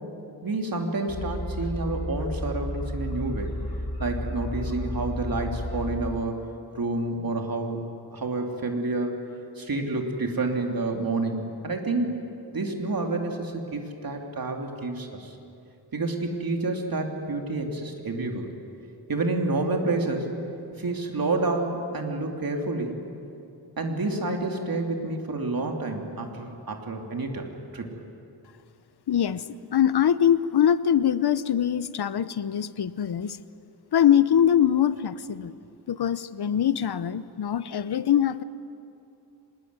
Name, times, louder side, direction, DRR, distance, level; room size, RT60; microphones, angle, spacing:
voice 1, 0.4-3.5 4.0-6.4 6.7-7.8 8.1-9.2 9.6-12.3 12.5-15.4 15.9-18.5 19.1-20.3 20.8-23.0 23.8-27.5 27.7-27.9, right 2 dB, 60° right, 2 dB, 3.1 m, -29 dB
sound 1, 1.1-6.1, left 1 dB, 90° left, 6.3 m, -32 dB
voice 2, 29.1-29.4 29.7-33.4 33.9-35.5 35.9-38.4, left 9 dB, 70° left, 15 dB, 0.9 m, -23 dB
24.0 x 21.0 x 9.6 m, 2.7 s
wide cardioid pair, 105°, 40 cm